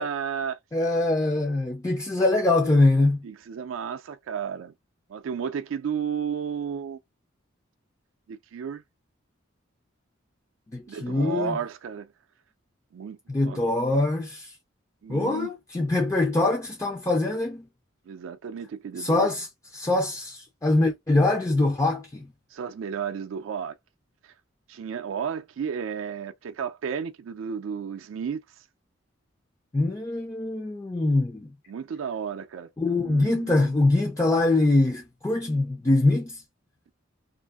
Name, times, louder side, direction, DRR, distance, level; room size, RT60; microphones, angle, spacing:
voice 1, 0.0-0.6 2.2-2.3 3.2-4.7 5.1-7.0 8.3-8.8 10.9-12.1 12.9-13.2 13.4-13.6 15.0-15.5 18.1-19.3 22.5-23.8 24.2-24.3 24.7-28.7 31.7-33.7, right 7 dB, 80° right, 0.4 m, -33 dB
voice 2, 0.7-3.2 10.7-11.6 13.3-14.5 15.1-17.7 19.0-19.5 19.7-22.3 29.7-31.5 32.8-36.4, left 2 dB, 15° left, 0.3 m, -23 dB
2.6 x 2.5 x 2.3 m
head